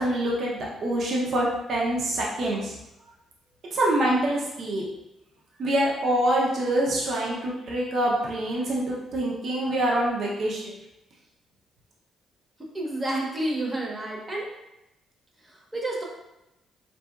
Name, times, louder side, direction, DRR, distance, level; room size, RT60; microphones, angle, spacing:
voice 1, 0.0-2.7 3.7-4.8 5.6-10.7, right 1 dB, 55° right, -3 dB, 0.6 m, -25 dB
voice 2, 12.7-14.5 15.4-16.0, right 1 dB, 20° right, -2 dB, 0.7 m, -30 dB
2.7 x 2.6 x 2.3 m, 0.92 s
cardioid pair, 90°, 0 cm